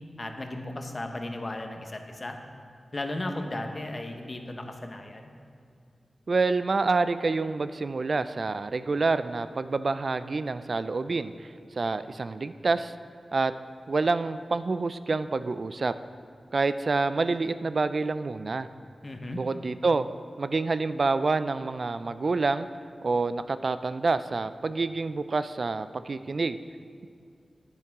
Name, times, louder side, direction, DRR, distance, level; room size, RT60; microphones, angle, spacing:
voice 1, 0.2-2.4 2.9-5.3 19.0-19.4, left 1 dB, 45° left, 4 dB, 1.0 m, -35 dB
voice 2, 6.3-12.9 13.3-13.5 13.9-15.9 16.5-18.7 19.3-20.1 20.4-22.7 23.0-26.6, right 3 dB, 60° right, 12 dB, 0.3 m, -27 dB
10.5 x 8.6 x 3.6 m, 2.3 s
cardioid pair, 45°, 0 cm